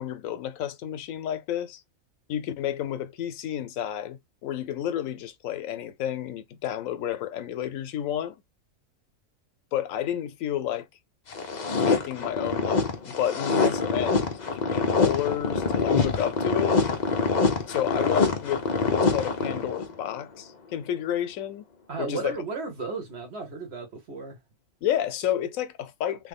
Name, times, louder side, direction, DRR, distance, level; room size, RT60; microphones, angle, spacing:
voice 1, 0.0-1.8 2.3-8.4 9.7-10.9 11.7-16.8 17.7-21.6 22.0-22.4 24.8-26.3, left 10 dB, 85° left, 1.0 m, -31 dB
sound 1, 11.3-19.9, left 4 dB, 45° left, 0.6 m, -25 dB
voice 2, 21.9-24.4, right 4 dB, 55° right, 1.3 m, -34 dB
3.3 x 2.1 x 3.4 m
omnidirectional pair, 1.4 m